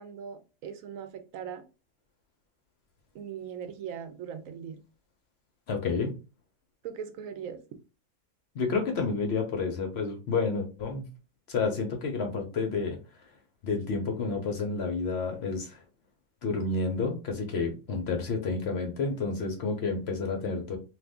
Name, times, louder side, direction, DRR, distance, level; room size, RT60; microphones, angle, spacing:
voice 1, 0.0-1.6 3.1-4.8 6.8-7.6, right 8 dB, 75° right, 1.0 m, -40 dB
voice 2, 5.7-6.1 8.5-11.0 11.5-13.0 13.6-15.8 16.4-20.8, left 4 dB, 55° left, 0.9 m, -30 dB
2.6 x 2.6 x 3.4 m
omnidirectional pair, 1.4 m